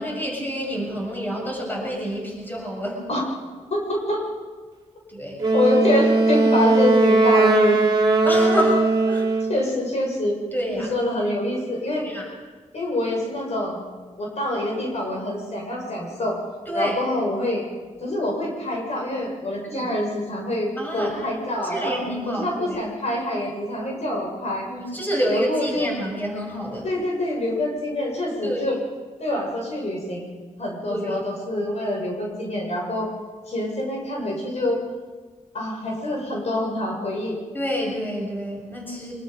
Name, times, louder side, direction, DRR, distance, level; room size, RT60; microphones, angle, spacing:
voice 1, 0.0-3.1 5.1-5.4 8.2-9.3 10.5-10.9 12.0-12.3 16.7-17.0 19.7-19.9 20.8-21.3 21.6-22.8 24.7-26.9 28.4-28.7 30.9-31.1 37.5-39.1, equal, 15° left, -1 dB, 7.0 m, -28 dB
voice 2, 3.7-4.2 5.5-7.8 9.5-10.4 10.7-12.0 12.7-13.8 14.2-16.4 16.7-17.6 18.0-22.0 22.3-24.7 25.3-25.9 26.8-28.8 29.2-30.3 30.6-33.1 33.5-34.8 35.5-37.4, left 1 dB, 60° left, -1 dB, 7.0 m, -25 dB
Wind instrument woodwind instrument, 5.4-9.6, right 3 dB, 40° right, 2.6 m, -19 dB
25.0 x 23.0 x 5.5 m, 1.4 s
wide cardioid pair, 125°, 12 cm